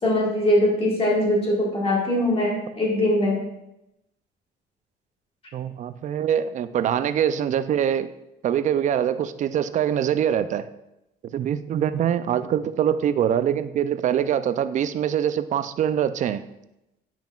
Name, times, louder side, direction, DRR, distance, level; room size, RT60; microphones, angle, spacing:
voice 1, 0.0-3.5, left 1 dB, 35° left, -3 dB, 1.7 m, -22 dB
voice 2, 5.5-8.1 8.4-10.7 11.3-16.4, right 9 dB, 45° right, 13 dB, 0.4 m, -24 dB
8.8 x 5.8 x 2.4 m, 0.88 s
cardioid pair, 110°, 17 cm